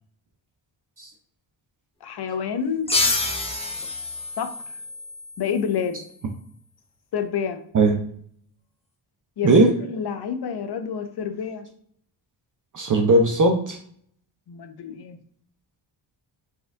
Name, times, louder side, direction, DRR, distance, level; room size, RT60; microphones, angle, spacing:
voice 1, 2.0-2.9 4.4-4.5 5.4-6.0 7.1-7.6 9.4-11.7 14.5-15.2, left 7 dB, 55° left, 8 dB, 0.6 m, -28 dB
sound 1, 2.9-6.1, left 3 dB, 15° left, 0.6 m, -28 dB
voice 2, 12.7-13.8, right 2 dB, 40° right, 3 dB, 0.5 m, -18 dB
4.4 x 2.3 x 3.5 m, 0.63 s
cardioid pair, 95°, 48 cm